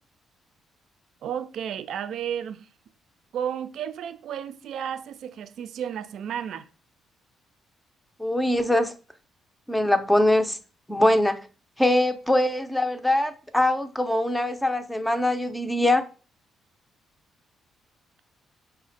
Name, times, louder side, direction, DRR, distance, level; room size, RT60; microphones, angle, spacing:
voice 1, 1.2-2.6 3.3-6.7, right 9 dB, 70° right, 0.4 m, -32 dB
voice 2, 8.2-8.9 9.7-10.6 10.9-11.4 11.8-16.0, left 1 dB, 5° left, 0.5 m, -22 dB
4.9 x 2.1 x 3.9 m
cardioid pair, 90°, 0 cm